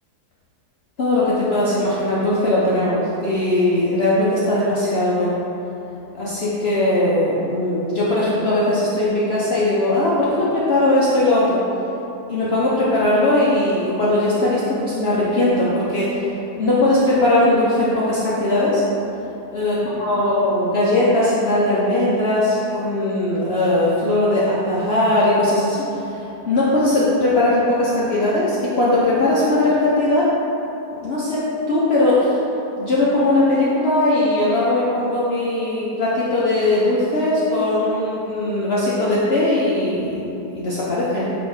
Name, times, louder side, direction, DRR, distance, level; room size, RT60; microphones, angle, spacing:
voice 1, 1.0-5.4 6.1-11.6 12.3-16.2 16.6-18.8 19.5-30.3 31.0-32.4 32.8-41.3, left 1 dB, 65° left, -7 dB, 0.6 m, -19 dB
3.9 x 2.9 x 4.7 m, 2.9 s
omnidirectional pair, 1.7 m